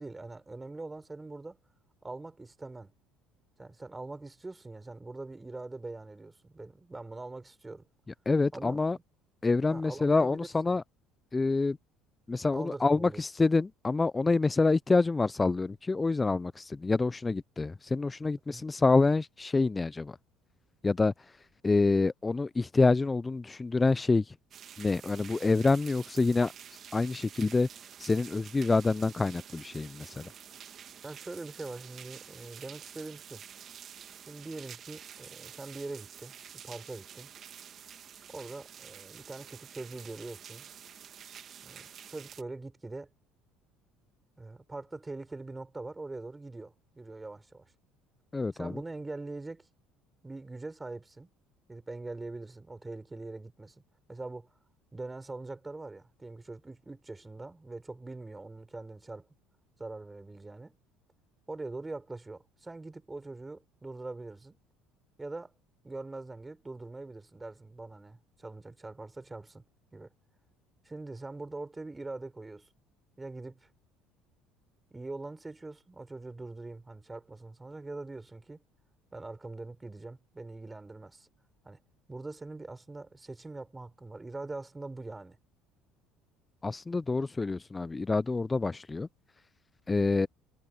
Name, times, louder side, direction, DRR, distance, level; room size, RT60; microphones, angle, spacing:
voice 1, 0.0-1.6 2.0-2.9 3.6-7.8 8.5-8.8 9.7-10.4 10.6-10.8 12.5-13.2 18.5-18.6 31.0-33.4 34.3-36.3 36.6-37.3 38.3-40.7 41.6-43.1 44.4-47.7 48.5-49.7 50.2-51.3 51.7-53.8 54.1-54.5 54.9-59.3 59.8-60.8 61.5-64.6 65.2-65.5 65.8-69.6 69.9-70.1 70.8-72.7 73.2-73.7 74.9-78.6 79.1-81.3 81.6-81.8 82.1-85.4, right 2 dB, 15° right, 6.0 m, -43 dB
voice 2, 8.3-9.0 9.4-10.8 11.3-11.8 12.3-20.2 20.8-21.1 21.6-24.2 24.8-26.5 26.9-27.7 28.0-30.3 48.3-48.7 86.6-89.1 89.9-90.3, left 3 dB, 20° left, 0.3 m, -27 dB
sound 1, 24.5-42.4, right 9 dB, 45° right, 1.6 m, -49 dB
supercardioid pair, 85°, 0 cm